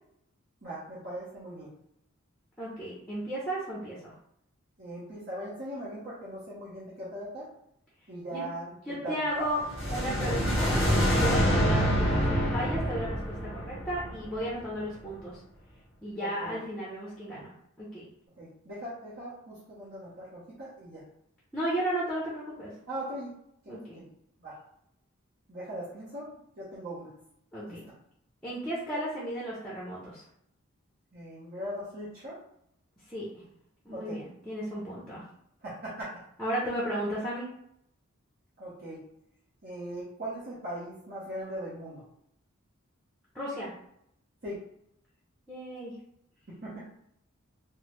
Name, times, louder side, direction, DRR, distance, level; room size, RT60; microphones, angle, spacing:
voice 1, 0.6-1.7 4.8-7.5 8.1-9.5 16.2-16.6 18.3-21.0 22.9-23.4 23.6-24.0 24.4-24.6 25.5-26.3 26.6-27.1 27.7-27.8 31.1-32.4 33.9-34.2 35.6-36.2 38.6-39.0 39.6-42.1 44.4-44.6 46.5-46.9, right 1 dB, 50° right, -8 dB, 0.9 m, -39 dB
voice 2, 2.6-4.1 8.3-8.5 8.9-9.6 9.9-15.4 16.0-17.5 17.8-18.0 21.5-22.7 23.7-24.0 27.5-27.8 28.4-30.2 33.1-33.3 33.9-35.2 36.4-37.5 43.3-43.7 45.5-45.9, equal, 5° left, -6 dB, 0.7 m, -34 dB
sound 1, 9.5-14.7, equal, 30° right, 1.4 m, -26 dB
3.4 x 2.1 x 3.0 m, 0.74 s
head